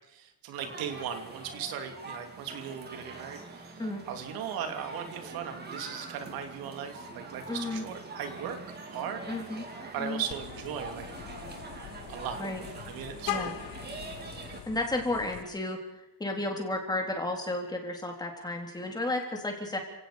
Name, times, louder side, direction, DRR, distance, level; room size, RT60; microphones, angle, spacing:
voice 1, 0.1-8.6 8.9-9.3 9.5-9.7 9.9-11.1 12.1-13.6, right 8 dB, 80° right, 6 dB, 2.9 m, -38 dB
sound 1, 0.6-14.6, right 3 dB, 30° right, 3.5 m, -44 dB
voice 2, 7.5-7.8 9.3-9.6 10.0-10.2 12.4-12.6 13.3-13.5 14.7-15.8 16.2-19.8, left 2 dB, 10° left, 2 dB, 3.7 m, -32 dB
Vehicle horn car horn honking, 10.3-15.4, left 11 dB, 70° left, 1.7 m, -41 dB
29.5 x 18.0 x 5.2 m, 0.92 s
cardioid pair, 160°, 35 cm